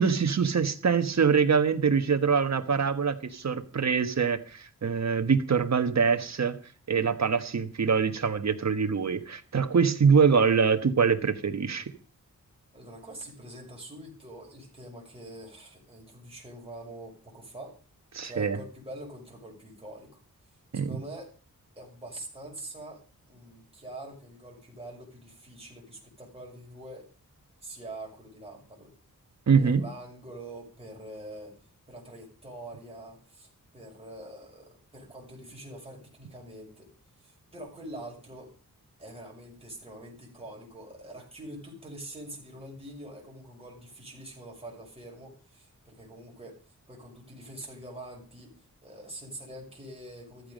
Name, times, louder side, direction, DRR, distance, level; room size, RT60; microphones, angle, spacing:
voice 1, 0.0-6.6 6.9-11.8 18.1-18.6 20.7-21.0 29.5-29.8, right 6 dB, 50° right, 8 dB, 1.4 m, -24 dB
voice 2, 12.7-17.8 18.2-20.2 20.7-21.3 21.8-27.1 27.6-28.9 29.6-31.6 31.9-36.9 37.2-38.5 39.0-48.5 48.8-50.5, right 1 dB, 15° right, -2 dB, 6.2 m, -45 dB
14.5 x 13.5 x 5.3 m, 0.39 s
wide cardioid pair, 140°, 34 cm